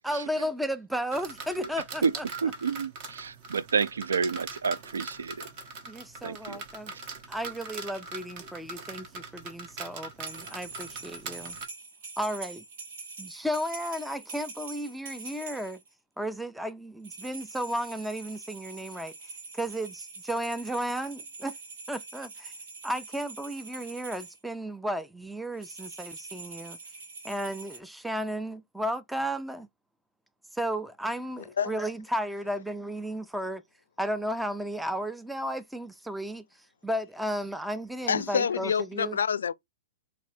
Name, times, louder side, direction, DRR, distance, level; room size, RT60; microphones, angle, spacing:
voice 1, 0.0-2.2 5.9-6.9 7.3-11.6 12.2-12.6 13.2-15.8 16.2-19.1 19.5-21.6 21.9-22.5 22.8-26.8 27.2-29.7 30.5-33.6 34.0-36.5 36.8-39.2, equal, 5° right, 0.3 m, -34 dB
sound 1, 1.1-11.7, right 3 dB, 45° right, 1.1 m, -42 dB
voice 2, 2.4-5.5 6.2-6.6, right 5 dB, 85° right, 0.3 m, -29 dB
sound 2, 10.2-15.9 17.0-24.4 25.5-27.8, right 4 dB, 65° right, 1.6 m, -44 dB
voice 3, 38.1-39.5, left 7 dB, 80° left, 0.4 m, -27 dB
4.1 x 3.3 x 2.7 m
hypercardioid pair, 125°, 0 cm